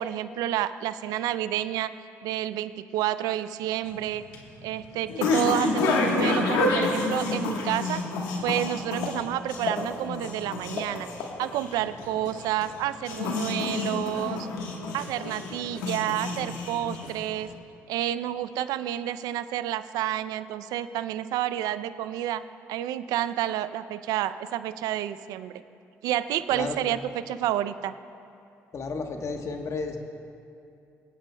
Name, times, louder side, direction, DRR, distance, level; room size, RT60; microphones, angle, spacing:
voice 1, 0.0-1.9 2.2-4.2 4.6-8.0 8.4-11.1 11.4-14.5 14.9-17.5 17.9-22.4 22.7-25.6 26.0-27.0 27.3-27.9, right 12 dB, 80° right, 14 dB, 0.4 m, -29 dB
sound 1, 3.9-17.4, left 3 dB, 85° left, 1.2 m, -29 dB
voice 2, 26.5-27.0 28.7-30.0, left 4 dB, 50° left, 4 dB, 1.1 m, -33 dB
24.5 x 8.9 x 2.2 m, 2.6 s
supercardioid pair, 65°, 6 cm